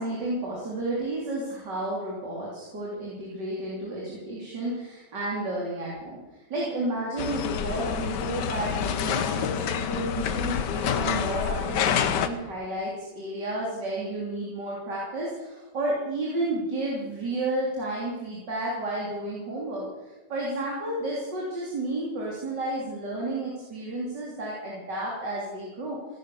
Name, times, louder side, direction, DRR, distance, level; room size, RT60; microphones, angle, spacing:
voice 1, 0.0-6.2 6.5-19.9 20.3-26.0, right 1 dB, 65° right, -4 dB, 3.9 m, -31 dB
sound 1, 7.2-12.3, left 8 dB, 70° left, 1.5 m, -27 dB
16.5 x 11.0 x 6.9 m, 1.1 s
omnidirectional pair, 2.0 m